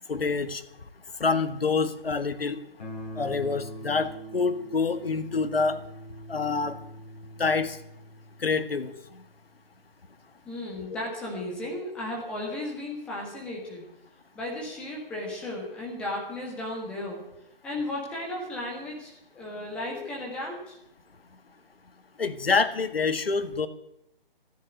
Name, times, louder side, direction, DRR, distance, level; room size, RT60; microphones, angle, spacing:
voice 1, 0.1-0.6 1.2-2.6 3.2-5.8 6.3-6.8 7.4-7.8 8.4-8.9 20.0-20.1 22.2-23.7, left 4 dB, 80° left, 11 dB, 1.8 m, -26 dB
Guitar, 2.8-9.5, right 1 dB, 45° left, 6.7 m, -43 dB
voice 2, 10.4-13.8 14.3-17.2 17.6-20.8, left 1 dB, 5° left, -3 dB, 1.6 m, -35 dB
14.0 x 9.9 x 9.3 m, 0.79 s
hypercardioid pair, 175°, 29 cm